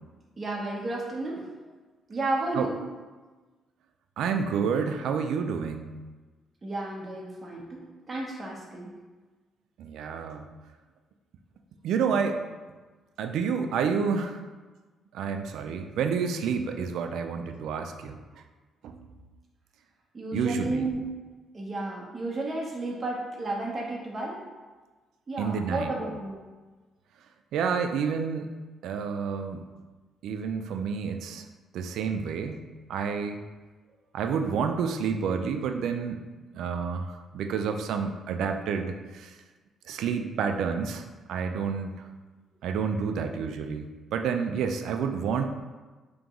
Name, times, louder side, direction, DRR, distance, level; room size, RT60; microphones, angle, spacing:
voice 1, 0.4-1.5 2.1-2.8 6.6-8.9 20.1-21.1 21.5-24.4 25.3-26.4, right 2 dB, 30° right, -2 dB, 0.9 m, -32 dB
voice 2, 4.2-6.0 9.8-10.4 11.8-12.4 13.2-14.4 15.1-18.2 18.8-19.1 20.3-20.9 25.4-25.9 27.5-28.5 28.8-29.6 30.2-31.4 31.7-33.4 34.1-36.2 36.5-39.4 39.9-42.1 42.6-45.4, right 6 dB, 80° right, 6 dB, 0.3 m, -29 dB
3.7 x 2.9 x 3.6 m, 1.3 s
cardioid pair, 90°, 0 cm